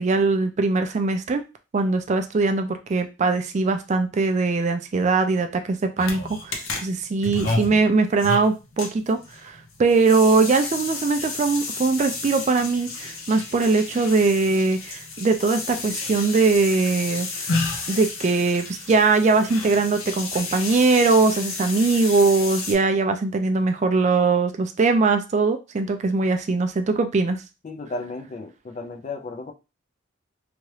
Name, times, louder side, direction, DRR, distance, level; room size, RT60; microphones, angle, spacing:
voice 1, 0.0-1.4 1.7-17.5 17.9-27.4, right 3 dB, 35° right, 7 dB, 0.3 m, -21 dB
sound 1, 6.0-22.7, left 3 dB, 85° left, 0.7 m, -32 dB
voice 2, 27.6-29.5, left 3 dB, 35° left, 6 dB, 0.4 m, -34 dB
2.9 x 2.3 x 3.1 m, 0.28 s
head